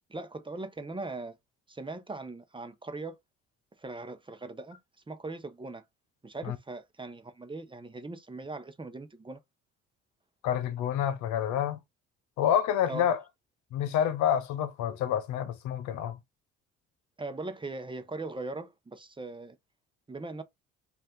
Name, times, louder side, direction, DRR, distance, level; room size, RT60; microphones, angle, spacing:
voice 1, 0.1-1.4 1.7-3.1 3.8-4.8 5.1-5.8 6.2-9.4 12.9-13.1 17.2-19.5 20.1-20.4, right 3 dB, 15° right, 0.8 m, -40 dB
voice 2, 10.4-11.8 12.4-13.2 13.7-16.2, left 9 dB, 80° left, 0.9 m, -28 dB
5.3 x 2.6 x 3.8 m
supercardioid pair, 85°, 29 cm